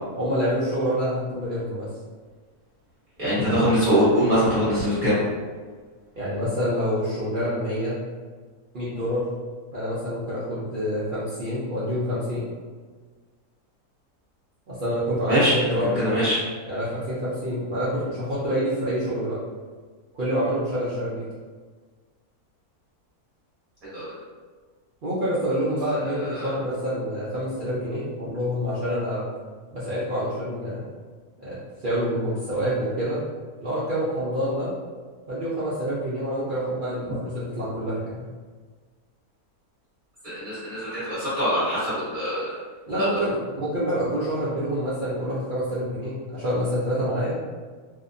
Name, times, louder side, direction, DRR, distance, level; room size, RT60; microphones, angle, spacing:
voice 1, 0.2-1.9 6.2-8.0 8.7-9.3 9.7-12.5 14.7-16.3 16.7-19.4 20.1-21.3 25.0-29.3 29.7-30.8 31.4-33.2 33.6-34.7 35.3-38.2 42.9-47.4, equal, 65° right, -10 dB, 0.5 m, -27 dB
voice 2, 3.2-5.2 15.3-16.4 23.8-24.1 26.1-26.5 40.2-42.5 42.9-43.1, equal, 40° right, -11 dB, 1.1 m, -23 dB
2.8 x 2.1 x 2.5 m, 1.5 s
omnidirectional pair, 1.6 m